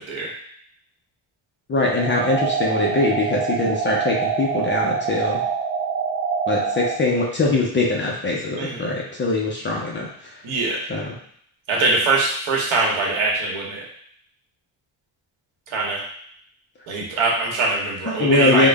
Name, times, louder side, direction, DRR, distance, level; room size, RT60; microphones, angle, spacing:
voice 1, 1.7-5.4 6.5-10.3 10.9-11.1 18.1-18.7, left 2 dB, 25° left, -2 dB, 0.4 m, -22 dB
sound 1, 1.9-6.9, right 6 dB, 35° right, 0.4 m, -25 dB
voice 2, 10.4-10.8 11.7-13.8 15.7-16.0 16.9-18.7, right 3 dB, 80° right, -2 dB, 1.2 m, -22 dB
3.7 x 2.0 x 3.3 m, 0.64 s
cardioid pair, 175°, 46 cm